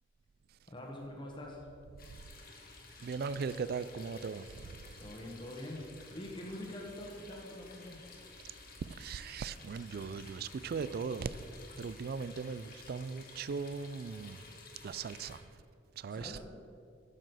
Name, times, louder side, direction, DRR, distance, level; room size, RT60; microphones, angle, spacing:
voice 1, 0.7-1.6 5.0-8.0 16.1-16.5, left 1 dB, 25° left, 1.3 m, -44 dB
sound 1, 2.0-15.4, left 3 dB, 50° left, 1.3 m, -53 dB
voice 2, 3.0-4.9 9.0-11.5 11.8-14.4 14.8-15.4 16.0-16.4, right 5 dB, 55° right, 0.3 m, -39 dB
8.8 x 6.2 x 6.6 m
head